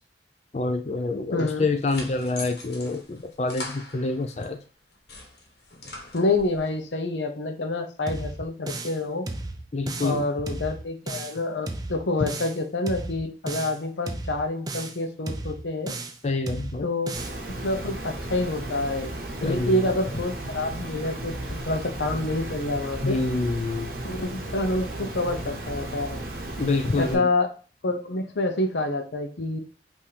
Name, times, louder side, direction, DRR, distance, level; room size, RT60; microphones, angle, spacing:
voice 1, 0.5-4.6 9.7-10.3 16.2-16.9 19.4-19.9 23.0-23.9 26.6-27.3, left 3 dB, 40° left, 5 dB, 0.4 m, -27 dB
voice 2, 1.3-1.6 6.1-9.3 10.0-15.9 16.8-17.2 17.6-19.1 19.4-23.2 24.0-26.2 27.0-27.5 27.8-29.6, left 2 dB, 90° left, 6 dB, 0.7 m, -27 dB
sound 1, 1.5-4.5 4.9-6.6, left 2 dB, 65° left, 1.2 m, -41 dB
sound 2, 8.1-9.0 9.3-10.2 10.5-11.4 11.7-12.6 12.9-13.8 14.1-15.0 15.3-16.2 16.5-17.4, right 2 dB, 20° right, 0.4 m, -34 dB
Water, 17.1-27.1, right 1 dB, 55° right, 0.9 m, -35 dB
5.6 x 2.7 x 3.3 m, 0.38 s
head